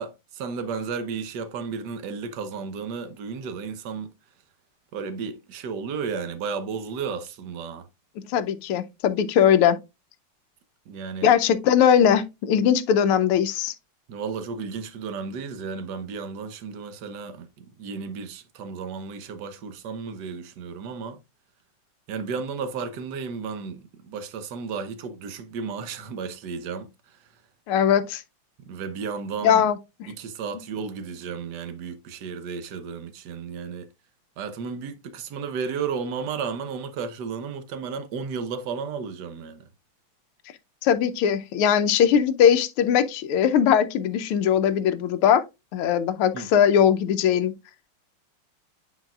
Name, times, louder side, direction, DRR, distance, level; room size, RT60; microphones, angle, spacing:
voice 1, 0.0-4.1 4.9-7.9 10.9-11.3 14.1-21.2 22.1-26.9 28.7-29.6 30.1-33.9 34.4-39.6 46.3-46.5, right 5 dB, 60° right, 1.2 m, -33 dB
voice 2, 8.3-9.8 11.2-13.7 27.7-28.2 29.4-29.8 40.8-45.4 45.7-47.5, left 8 dB, 80° left, 1.5 m, -20 dB
9.6 x 4.6 x 2.3 m
omnidirectional pair, 2.4 m